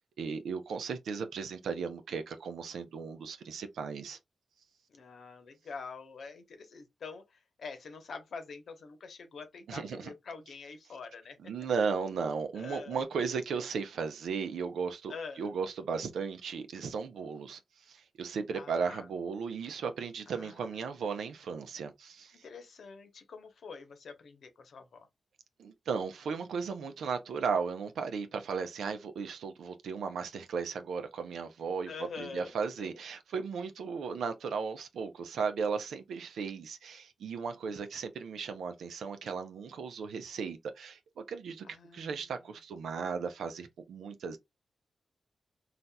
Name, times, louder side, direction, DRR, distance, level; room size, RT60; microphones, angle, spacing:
voice 1, 0.2-4.2 9.7-10.1 11.4-17.6 17.9-22.4 25.6-31.9 32.2-41.0 41.3-41.6 41.9-44.4, right 5 dB, 90° right, 0.6 m, -36 dB
voice 2, 4.9-11.4 11.8-12.2 12.5-13.6 15.1-15.5 18.5-19.1 20.3-21.0 22.4-25.1 31.9-32.9 41.6-42.3, left 5 dB, 75° left, 0.9 m, -46 dB
4.0 x 2.5 x 2.2 m
cardioid pair, 55°, 0 cm